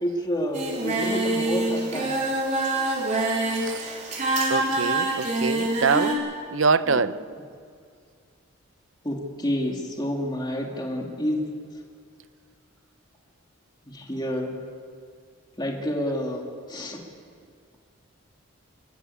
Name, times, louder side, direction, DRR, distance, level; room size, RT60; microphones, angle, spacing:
voice 1, 0.0-2.2 6.8-7.0 9.0-11.4 13.9-14.6 15.6-17.0, equal, 20° left, 2.7 m, -29 dB
Singing, 0.5-6.1, right 2 dB, 35° right, 4.3 m, -25 dB
voice 2, 4.5-7.1, right 4 dB, 65° right, 0.7 m, -24 dB
28.0 x 13.5 x 8.6 m
head